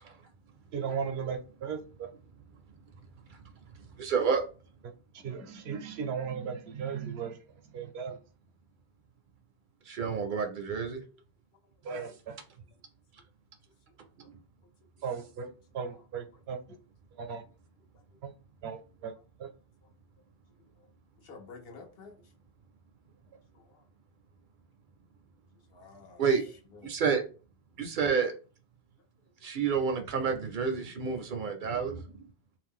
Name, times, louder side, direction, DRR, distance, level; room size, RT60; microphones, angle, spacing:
voice 1, 0.7-2.1 5.1-7.4 7.7-8.2 11.8-12.4 15.0-16.6 17.2-17.4 18.2-18.3 18.6-19.1 19.4-19.5, right 6 dB, 85° right, 0.9 m, -36 dB
voice 2, 4.0-4.4 9.9-11.0 26.2-26.4 26.8-27.2 27.8-28.3 29.4-32.0, right 6 dB, 60° right, 0.6 m, -29 dB
voice 3, 21.2-22.3 23.5-23.9 25.7-26.9 29.4-29.5 31.3-31.7, left 4 dB, 70° left, 0.9 m, -53 dB
2.5 x 2.2 x 3.5 m
omnidirectional pair, 1.0 m